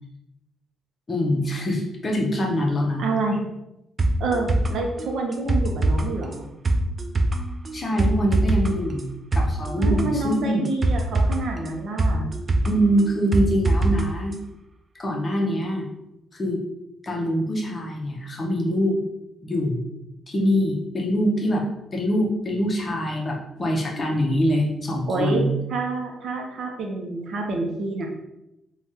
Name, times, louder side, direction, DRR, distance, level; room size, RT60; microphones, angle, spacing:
voice 1, 1.1-3.0 7.7-10.7 12.6-14.4 15.0-15.9 16.3-16.6 17.0-19.0 19.4-19.9 20.3-25.5, equal, 25° left, 0 dB, 0.6 m, -24 dB
voice 2, 3.0-3.4 4.2-6.4 9.8-12.3 25.1-25.4 25.7-28.1, right 2 dB, 60° right, 1 dB, 0.6 m, -28 dB
sound 1, 4.0-14.0 14.3-14.4, right 2 dB, 30° right, 0.3 m, -23 dB
3.3 x 2.3 x 2.8 m, 0.89 s
cardioid pair, 130°, 0 cm